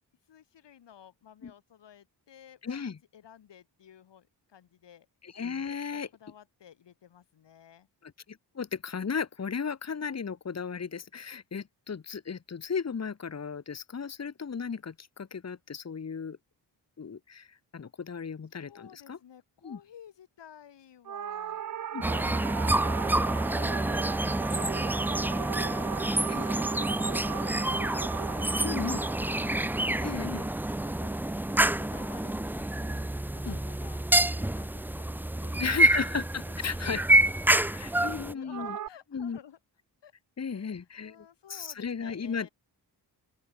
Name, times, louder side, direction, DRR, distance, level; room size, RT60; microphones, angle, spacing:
voice 1, 0.3-5.1 5.7-7.9 18.5-21.6 24.1-28.2 28.4-30.1 30.8-34.0 34.4-35.1 35.4-36.2 36.5-36.6 36.8-39.6 40.0-40.1 40.5-42.5, left 9 dB, 80° left, 4.7 m, -54 dB
voice 2, 2.6-3.0 5.2-6.1 8.0-16.4 17.0-19.2 19.6-19.8 21.9-22.0 26.3-26.5 28.6-29.0 30.0-30.5 33.4-33.6 35.6-37.0 37.7-38.8 39.1-39.4 40.4-41.2 41.5-42.5, left 6 dB, 40° left, 2.5 m, -35 dB
sound 1, 21.1-31.6 38.5-38.9, right 10 dB, 50° right, 0.6 m, -38 dB
sound 2, 22.0-38.3, right 1 dB, 5° right, 0.4 m, -27 dB
open air
wide cardioid pair, 160°, 42 cm